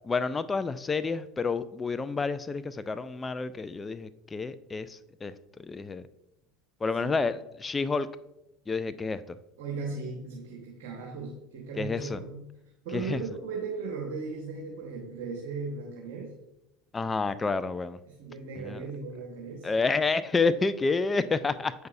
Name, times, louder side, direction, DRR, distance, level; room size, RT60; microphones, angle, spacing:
voice 1, 0.0-5.3 5.6-6.0 6.8-8.1 8.7-9.2 11.8-12.2 12.9-13.2 16.9-18.0 18.6-18.8 19.6-21.7, left 4 dB, 20° left, 14 dB, 0.3 m, -29 dB
voice 2, 9.6-12.4 12.8-16.3 18.0-19.7, right 4 dB, 70° right, -1 dB, 1.3 m, -37 dB
7.8 x 5.3 x 2.6 m, 0.90 s
hypercardioid pair, 85°, 0 cm